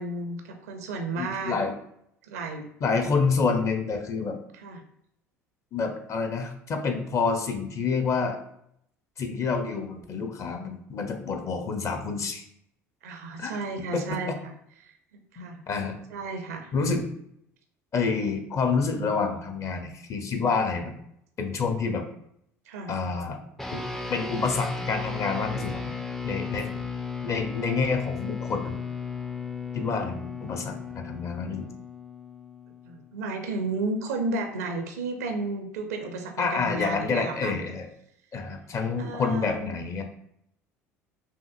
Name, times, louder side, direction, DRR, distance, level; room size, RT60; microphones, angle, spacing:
voice 1, 0.0-1.5 2.2-2.7 4.5-4.8 13.0-14.5 14.8-15.6 16.1-16.7 22.7-22.9 32.8-37.6 39.0-39.8, right 3 dB, 75° right, 5 dB, 0.5 m, -33 dB
voice 2, 1.1-1.7 2.8-4.4 5.7-8.4 9.2-12.4 13.4-13.6 13.9-14.2 15.4-16.0 16.7-17.1 17.9-20.9 21.4-22.1 22.9-23.4 23.7-23.8 24.1-25.8 26.2-26.7 27.2-28.8 29.7-31.7 36.4-37.9 38.3-40.0, left 4 dB, 40° left, 6 dB, 0.7 m, -28 dB
sound 1, 23.6-33.2, left 5 dB, 5° left, 0.4 m, -35 dB
5.5 x 2.5 x 2.4 m, 0.74 s
figure-of-eight pair, 65°, 8 cm